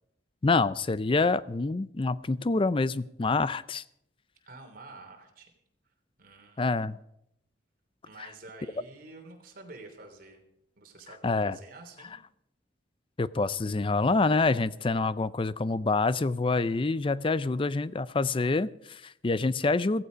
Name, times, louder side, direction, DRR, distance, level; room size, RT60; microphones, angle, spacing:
voice 1, 0.4-3.8 6.6-7.0 11.2-11.6 13.2-20.0, left 3 dB, 30° left, 17 dB, 0.4 m, -26 dB
voice 2, 4.5-5.5 6.2-6.7 8.0-10.4 10.8-12.1, right 2 dB, 50° right, 3 dB, 3.1 m, -48 dB
15.5 x 15.0 x 5.1 m, 0.79 s
head